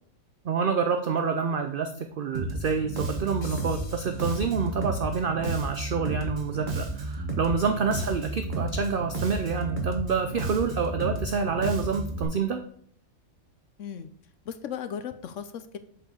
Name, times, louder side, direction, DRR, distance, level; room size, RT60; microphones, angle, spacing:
voice 1, 0.4-12.6, right 5 dB, 55° right, 7 dB, 0.6 m, -27 dB
Bass guitar, 2.3-12.2, right 2 dB, 35° right, 1.2 m, -32 dB
sound 1, 3.4-5.0, left 3 dB, 40° left, 1.3 m, -49 dB
voice 2, 8.0-8.3 13.8-14.1 14.4-15.8, left 8 dB, 65° left, 11 dB, 0.9 m, -37 dB
7.9 x 4.4 x 6.3 m, 0.63 s
omnidirectional pair, 1.5 m